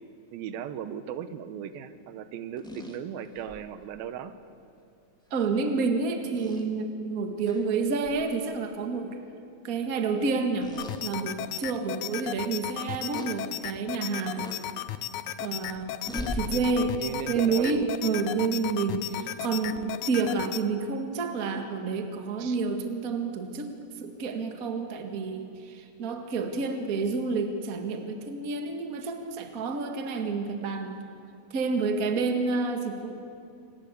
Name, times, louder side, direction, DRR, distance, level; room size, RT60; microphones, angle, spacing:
voice 1, 0.3-4.3 16.5-18.7 22.4-22.6, right 9 dB, 85° right, 11 dB, 2.8 m, -37 dB
sound 1, 2.6-3.7 5.3-5.5 6.3-6.6 7.4-7.7 8.0-8.2 10.6-11.0 11.6-11.7 13.1-13.3 14.4-14.6 16.1-16.4, left 1 dB, ahead, 1.3 m, -38 dB
voice 2, 5.3-9.2 9.6-10.7 11.0-14.6 15.4-15.9 16.3-17.0 17.3-31.0 31.5-33.4, right 4 dB, 35° right, 5 dB, 1.5 m, -29 dB
sound 2, 10.8-20.6, left 12 dB, 75° left, 1.8 m, -36 dB
27.0 x 19.0 x 8.2 m, 2.5 s
omnidirectional pair, 4.1 m